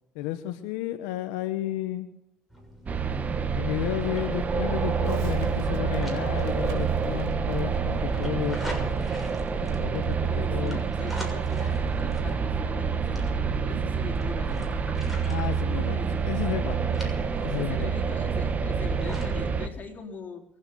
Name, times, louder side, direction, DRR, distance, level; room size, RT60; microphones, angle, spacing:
voice 1, 0.1-2.1 3.5-9.1 9.8-10.8 15.3-17.9, left 13 dB, 85° left, 8 dB, 1.1 m, -32 dB
sound 1, 2.5-19.4, equal, ahead, 6.6 m, -44 dB
sound 2, 2.9-19.7, right 6 dB, 35° right, 1.5 m, -27 dB
Crackle, 5.0-11.9, right 4 dB, 85° right, 2.9 m, -50 dB
voice 2, 9.6-9.9 10.2-13.3 13.7-14.7 15.9-16.2 17.4-20.4, left 5 dB, 40° left, 2 dB, 3.8 m, -42 dB
23.5 x 8.8 x 7.0 m, 0.91 s
supercardioid pair, 85°, 4 cm